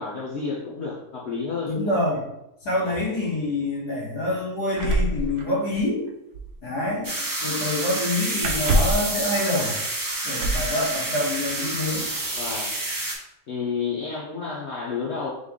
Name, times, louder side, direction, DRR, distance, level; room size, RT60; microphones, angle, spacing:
voice 1, 0.0-2.0 12.3-12.8 13.5-15.3, left 5 dB, 55° left, -5 dB, 0.8 m, -30 dB
voice 2, 1.7-2.3 2.6-6.1 6.6-7.2 7.4-9.8 10.2-12.1, left 1 dB, 85° left, -5 dB, 1.9 m, -26 dB
sound 1, 4.8-6.1 6.3-6.6 8.4-9.1 10.4-10.8 11.9-12.0 12.4-12.9, right 1 dB, 80° right, 1.2 m, -24 dB
sound 2, 7.0-13.2, right 2 dB, 30° right, 0.3 m, -28 dB
4.0 x 3.2 x 3.6 m, 0.84 s
omnidirectional pair, 1.7 m